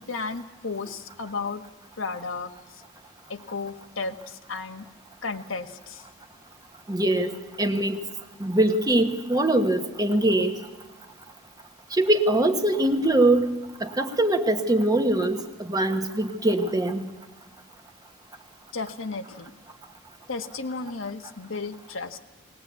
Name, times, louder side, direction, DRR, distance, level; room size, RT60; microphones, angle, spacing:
voice 1, 0.0-1.7 2.0-2.8 3.3-4.9 5.2-6.1 18.7-19.5 20.3-22.2, left 4 dB, 80° left, 5 dB, 1.4 m, -34 dB
voice 2, 6.9-8.0 8.4-10.6 11.9-13.5 13.8-17.0, right 1 dB, 20° right, 6 dB, 1.3 m, -22 dB
20.0 x 20.0 x 8.4 m, 1.2 s
head